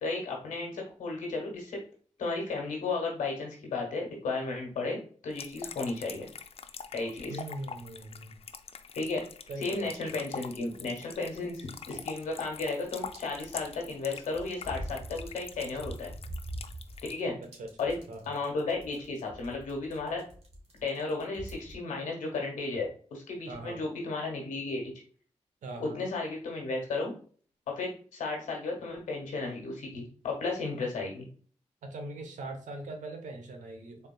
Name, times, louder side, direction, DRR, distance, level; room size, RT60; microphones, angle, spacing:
voice 1, 0.0-1.8 2.2-6.3 6.9-7.4 8.9-9.2 9.6-16.1 17.1-17.4 17.8-17.9 18.2-20.2 20.8-24.9 25.8-27.1 27.7-31.3, left 3 dB, 85° left, 0 dB, 1.3 m, -34 dB
sound 1, 5.3-17.2, left 6 dB, 55° left, 0.4 m, -44 dB
voice 2, 7.3-8.4 9.5-9.9 17.4-18.4 23.5-23.8 25.6-26.0 31.8-34.1, right 2 dB, 85° right, 5 dB, 0.8 m, -41 dB
sound 2, 9.8-21.7, right 1 dB, 55° right, 1.4 m, -45 dB
4.0 x 3.4 x 2.2 m, 0.44 s
supercardioid pair, 45°, 13 cm